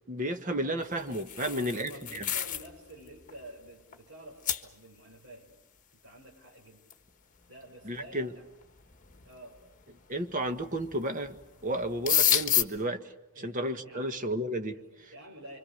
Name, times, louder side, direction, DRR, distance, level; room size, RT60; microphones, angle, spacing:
voice 1, 0.1-2.3 7.8-8.3 10.1-11.4 11.6-15.1, right 1 dB, 35° right, 7 dB, 1.5 m, -33 dB
sound 1, 0.9-2.7 3.1-3.3 3.9-4.0 4.5-4.6 6.9-7.0 8.0-8.1 8.8-9.3 10.5-11.0 11.3-11.4 11.7-12.6, left 11 dB, 35° left, 1.4 m, -28 dB
voice 2, 1.4-5.6 6.0-6.8 7.5-8.4 9.3-9.6 13.3-14.1 14.7-15.6, right 1 dB, 65° right, 0 dB, 5.5 m, -49 dB
27.5 x 25.0 x 6.6 m, 0.93 s
head